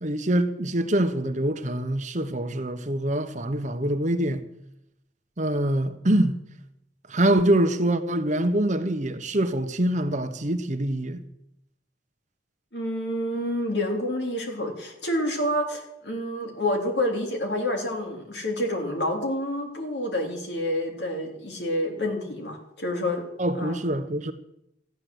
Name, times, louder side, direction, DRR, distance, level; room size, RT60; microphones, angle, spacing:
voice 1, 0.0-4.4 5.4-6.4 7.1-11.2 23.4-24.3, right 1 dB, 40° right, 1.1 m, -24 dB
voice 2, 12.7-23.2 23.6-23.8, left 1 dB, 65° left, 3.6 m, -28 dB
14.5 x 10.5 x 8.0 m
head